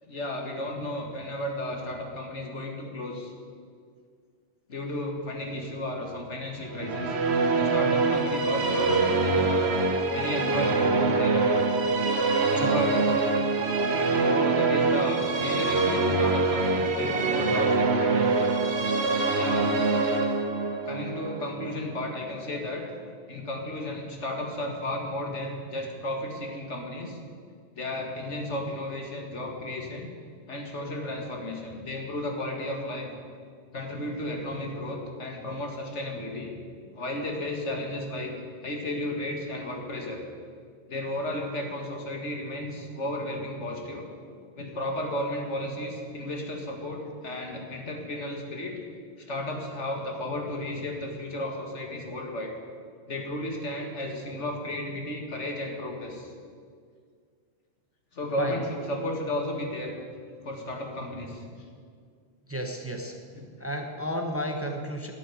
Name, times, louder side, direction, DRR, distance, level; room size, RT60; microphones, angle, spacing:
voice 1, 0.0-3.3 4.7-7.2 7.5-9.7 10.1-11.6 12.5-13.0 14.1-18.4 19.3-19.7 20.8-22.9 23.3-27.2 27.8-30.1 30.5-33.1 33.7-36.6 37.0-38.3 38.6-40.2 40.9-44.1 44.6-48.8 49.2-52.5 53.1-56.3 58.1-60.0 60.4-61.4 63.3-63.4, left 1 dB, 75° left, 2 dB, 2.2 m, -33 dB
Musical instrument, 6.7-22.1, right 3 dB, 65° right, 1.3 m, -24 dB
voice 2, 62.5-63.2 63.6-65.1, equal, 10° right, 3 dB, 1.1 m, -32 dB
11.0 x 9.2 x 9.8 m, 2.1 s
omnidirectional pair, 1.2 m